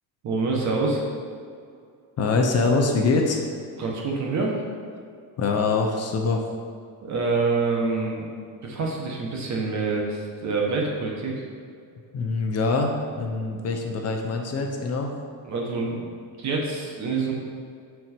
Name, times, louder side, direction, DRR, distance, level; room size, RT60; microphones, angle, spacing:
voice 1, 0.2-1.0 3.8-4.6 7.0-8.3 8.6-11.4 15.4-16.0 16.4-17.3, right 3 dB, 45° right, -1 dB, 1.2 m, -26 dB
voice 2, 2.2-3.4 5.4-6.4 12.1-15.1, left 3 dB, 40° left, 2 dB, 0.8 m, -24 dB
7.8 x 4.6 x 4.4 m, 2.3 s
cardioid pair, 135°, 38 cm